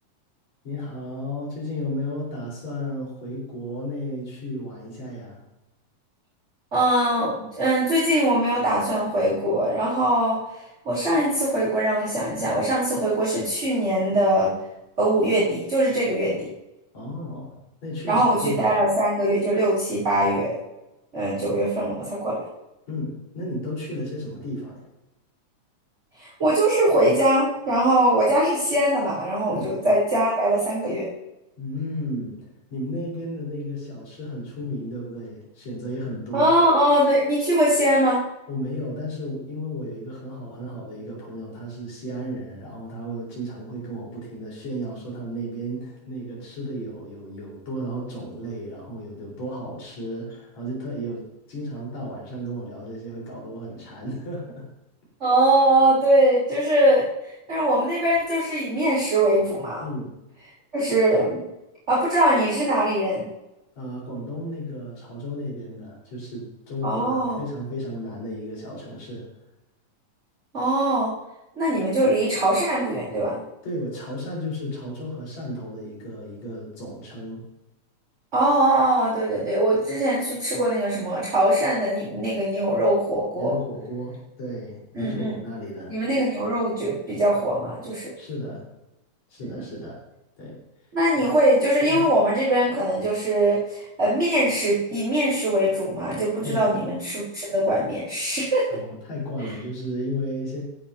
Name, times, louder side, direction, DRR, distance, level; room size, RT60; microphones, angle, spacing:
voice 1, 0.6-5.4 16.9-18.8 22.9-24.9 29.4-29.7 31.6-32.4 32.7-36.5 38.5-54.7 59.8-60.1 63.8-69.3 73.6-77.4 83.4-86.0 88.2-88.6 89.3-90.0 90.4-90.6 91.2-91.3 91.9-92.0 96.4-96.7 98.7-100.6, equal, 60° left, -5 dB, 5.9 m, -33 dB
voice 2, 6.7-10.4 10.9-14.5 15.0-16.5 18.1-20.6 21.1-22.5 26.2-31.1 36.3-38.2 55.2-57.1 57.5-59.8 60.7-61.4 61.9-63.2 66.8-67.4 70.5-71.1 71.6-73.4 78.3-83.5 84.9-85.3 85.9-88.1 89.5-89.6 90.9-98.8, right 1 dB, 20° right, -8 dB, 3.7 m, -22 dB
16.0 x 10.5 x 2.9 m, 0.92 s
omnidirectional pair, 3.5 m